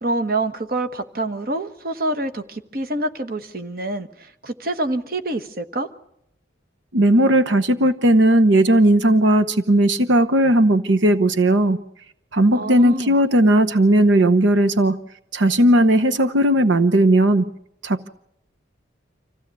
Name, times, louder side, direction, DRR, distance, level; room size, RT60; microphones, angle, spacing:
voice 1, 0.0-5.9 12.5-13.2, right 2 dB, 50° right, 8 dB, 1.3 m, -26 dB
voice 2, 6.9-11.8 12.3-15.0 15.3-17.5 17.8-18.1, right 1 dB, 80° right, 8 dB, 1.0 m, -16 dB
26.5 x 16.0 x 8.3 m, 0.76 s
head